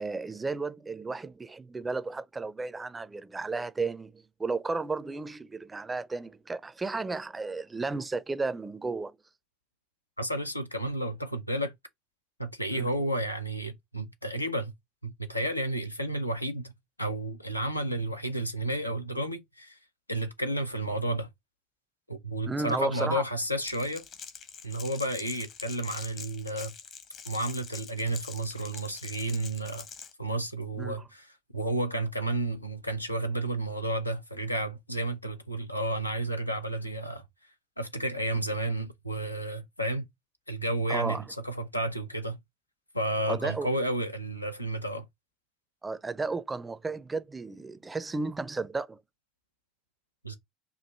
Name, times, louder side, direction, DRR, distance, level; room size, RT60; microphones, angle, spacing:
voice 1, 0.0-9.2 12.7-12.9 22.4-23.2 30.8-31.0 40.9-41.3 43.3-43.7 45.8-49.0, right 3 dB, 15° right, 0.5 m, -33 dB
voice 2, 10.2-11.7 12.4-14.7 15.0-16.7 17.0-19.8 20.1-21.3 22.1-24.0 24.6-26.7 27.3-29.9 30.2-37.2 37.8-40.0 40.5-42.4 42.9-45.1 50.2-50.3, right 1 dB, 90° left, 0.6 m, -31 dB
Crackle, 23.6-30.1, left 6 dB, 40° left, 1.0 m, -44 dB
4.7 x 2.5 x 4.2 m
figure-of-eight pair, 65°, 0 cm